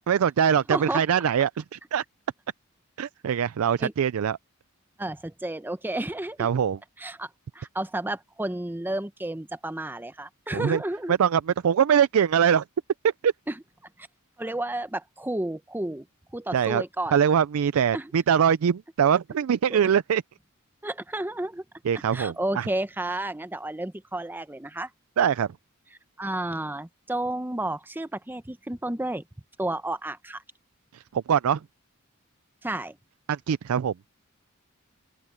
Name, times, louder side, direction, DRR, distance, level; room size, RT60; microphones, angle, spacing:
voice 1, 0.1-2.0 3.0-4.4 6.4-6.8 10.5-10.8 11.1-12.6 13.0-13.3 16.5-16.8 17.1-20.2 21.8-22.7 25.2-25.5 30.9-31.6 33.3-33.9, right 8 dB, 85° right, 0.4 m, -23 dB
voice 2, 0.7-1.0 3.8-3.9 5.0-6.5 7.0-7.3 7.5-11.1 13.5-13.6 14.4-16.1 16.3-17.1 17.9-18.1 19.7-19.8 20.8-21.6 22.1-24.9 26.2-29.2 29.6-30.4 32.6-33.0, right 1 dB, 10° right, 0.7 m, -31 dB
open air
head